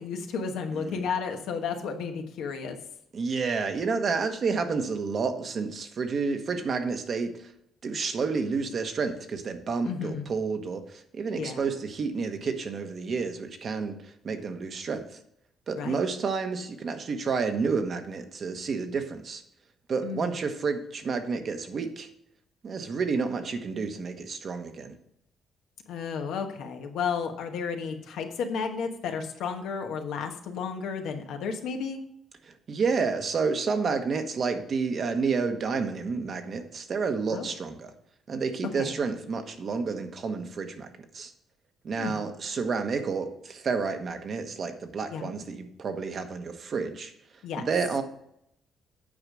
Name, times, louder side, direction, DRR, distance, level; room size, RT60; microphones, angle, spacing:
voice 1, 0.0-2.8 9.8-10.2 11.3-11.6 15.8-16.0 20.0-20.3 25.9-32.0 37.3-37.5 38.8-38.9 42.0-42.1 45.1-45.3 47.4-47.6, left 6 dB, 85° left, 4 dB, 1.2 m, -32 dB
voice 2, 0.7-1.1 3.1-7.5 7.8-15.2 15.7-19.4 19.9-22.1 22.6-24.9 32.4-37.9 38.3-41.3 41.8-47.1 47.6-48.0, right 5 dB, 50° right, 7 dB, 1.2 m, -30 dB
8.8 x 4.9 x 6.1 m, 0.74 s
cardioid pair, 90°, 0 cm